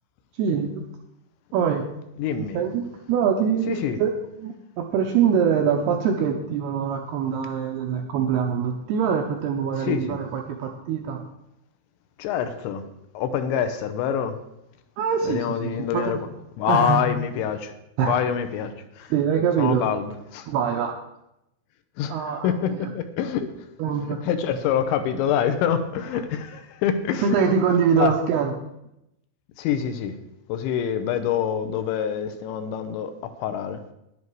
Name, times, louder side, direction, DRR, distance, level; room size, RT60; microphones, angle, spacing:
voice 1, 0.4-0.8 1.5-1.8 2.4-4.1 4.4-11.2 15.0-16.2 16.7-17.1 18.0-18.2 19.1-19.9 20.5-21.0 22.1-22.9 23.8-24.2 27.2-28.5, right 7 dB, 80° right, 3 dB, 2.4 m, -24 dB
voice 2, 2.2-2.6 3.7-4.0 9.8-10.2 12.2-12.8 13.1-14.3 15.2-16.2 16.6-17.7 18.0-19.1 19.6-20.5 22.0-23.5 24.2-27.4 28.0-28.1 29.6-30.2 30.5-33.1 33.4-33.8, left 8 dB, 80° left, 8 dB, 2.9 m, -26 dB
11.0 x 10.5 x 4.7 m, 0.86 s
omnidirectional pair, 5.5 m